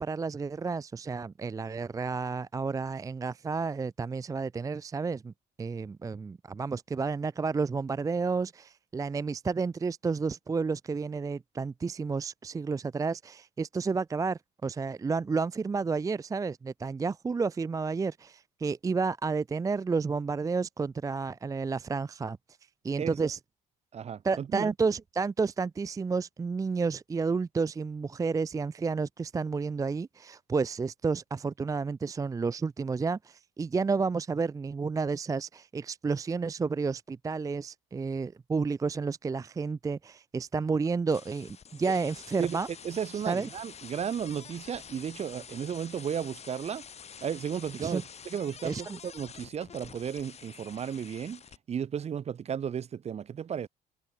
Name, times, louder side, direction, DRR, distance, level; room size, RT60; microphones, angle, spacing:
voice 1, 0.0-5.3 5.6-22.4 22.8-23.4 24.2-42.7 43.1-43.5 47.8-48.0 48.6-49.0, right 4 dB, 20° right, 0.5 m, -31 dB
voice 2, 23.0-23.3 23.9-24.7 42.4-42.6 42.8-46.8 47.2-51.4 51.7-53.7, right 8 dB, 40° right, 1.0 m, -34 dB
sound 1, 41.1-51.6, left 7 dB, 40° left, 4.0 m, -48 dB
cardioid pair, 110°, 17 cm